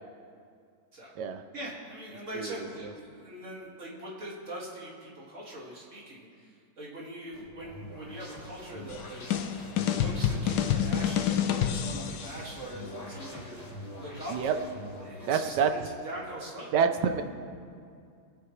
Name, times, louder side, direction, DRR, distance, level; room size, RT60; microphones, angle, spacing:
voice 1, 1.5-9.2 9.9-13.6 14.0-14.7 15.0-16.7, right 1 dB, 45° right, -4 dB, 2.5 m, -42 dB
voice 2, 2.3-2.9 14.3-14.5 15.3-15.7 16.7-17.2, right 7 dB, 75° right, 7 dB, 1.4 m, -27 dB
sound 1, 7.3-15.3, left 1 dB, 25° left, 1.5 m, -44 dB
sound 2, 8.9-12.4, left 9 dB, 75° left, 1.3 m, -28 dB
21.5 x 9.2 x 3.2 m, 2.4 s
omnidirectional pair, 1.9 m